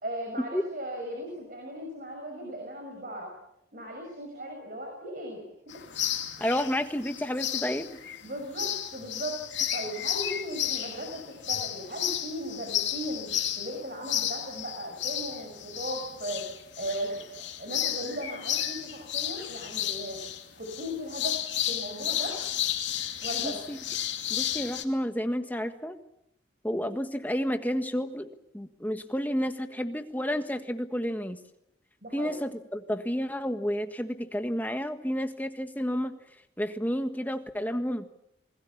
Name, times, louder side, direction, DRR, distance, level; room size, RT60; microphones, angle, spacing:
voice 1, 0.0-3.3 3.7-5.5 6.4-6.5 8.2-9.4 9.7-13.3 13.6-16.4 16.8-17.2 17.6-20.2 20.6-21.4 21.7-22.4 23.2-23.6 32.0-32.3, right 1 dB, 45° right, 2 dB, 6.0 m, -37 dB
sound 1, 5.7-24.8, left 11 dB, 75° left, 2.5 m, -33 dB
voice 2, 6.4-8.0 23.4-23.8 24.3-26.0 26.6-31.4 32.1-36.1 36.6-38.1, equal, 10° left, 7 dB, 1.5 m, -31 dB
27.5 x 21.0 x 7.1 m, 0.79 s
head